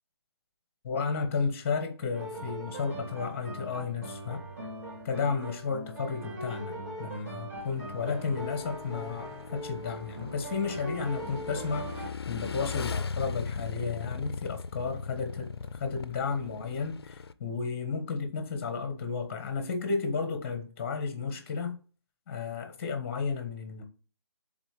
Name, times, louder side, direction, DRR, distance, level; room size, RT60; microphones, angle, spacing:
voice 1, 0.8-4.4 5.0-21.8 22.3-23.8, left 5 dB, 30° left, 1.3 m, -33 dB
sound 1, 2.1-12.1, right 1 dB, 40° right, 3.3 m, -40 dB
Motorcycle / Engine, 7.6-17.3, left 5 dB, 65° left, 0.5 m, -39 dB
9.7 x 4.0 x 3.3 m
figure-of-eight pair, 150°, 14 cm